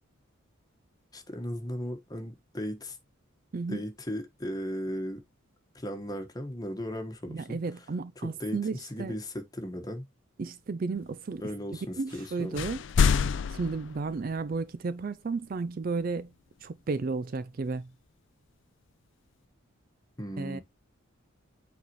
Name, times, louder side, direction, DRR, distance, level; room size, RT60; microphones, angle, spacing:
voice 1, 1.1-3.0 3.7-5.2 5.7-7.9 8.2-10.1 11.4-12.6 20.2-20.6, equal, 15° left, 1.3 m, -36 dB
voice 2, 7.3-9.1 10.4-11.4 12.0-12.8 13.5-16.3 16.6-17.9 20.4-20.6, right 4 dB, 40° right, 0.3 m, -33 dB
sound 1, 12.1-12.3 12.5-14.6, left 6 dB, 60° left, 0.4 m, -27 dB
8.3 x 4.2 x 3.0 m
head